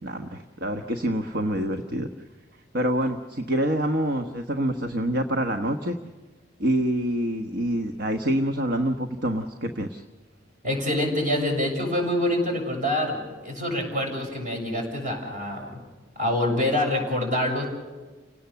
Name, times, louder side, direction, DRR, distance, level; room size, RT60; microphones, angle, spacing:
voice 1, 0.0-2.1 2.7-6.0 6.6-10.0, right 1 dB, 60° right, 5 dB, 1.3 m, -26 dB
voice 2, 10.6-15.8 16.2-17.7, left 1 dB, 45° right, 1 dB, 7.3 m, -26 dB
30.0 x 18.0 x 7.0 m, 1.3 s
head